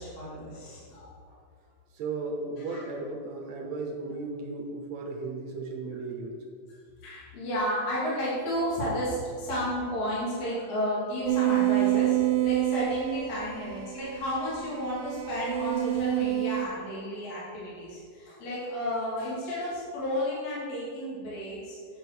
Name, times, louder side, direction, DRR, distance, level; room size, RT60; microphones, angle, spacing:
voice 1, 0.0-1.4 2.7-2.8 7.0-21.8, equal, 50° left, -8 dB, 3.4 m, -32 dB
voice 2, 1.9-6.4 13.7-13.8 14.2-14.3 17.7-17.8, right 3 dB, 65° right, 1 dB, 1.8 m, -36 dB
sound 1, 11.3-16.7, right 14 dB, 85° right, 2.3 m, -27 dB
9.2 x 5.3 x 6.1 m, 2.1 s
omnidirectional pair, 4.3 m